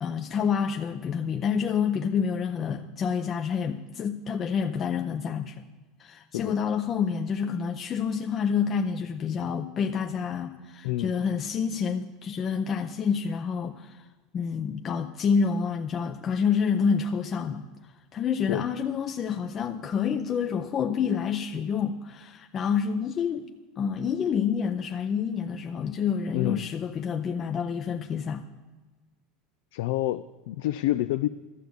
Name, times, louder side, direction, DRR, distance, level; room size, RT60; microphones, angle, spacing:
voice 1, 0.0-5.6 6.0-14.0 14.3-17.7 18.1-23.5 23.8-28.4, left 6 dB, 35° left, 5 dB, 0.6 m, -28 dB
voice 2, 10.8-11.2 18.5-18.7 26.3-26.7 29.7-31.3, left 15 dB, 80° left, 11 dB, 0.3 m, -28 dB
12.5 x 6.9 x 8.0 m, 1.3 s
supercardioid pair, 105°, 0 cm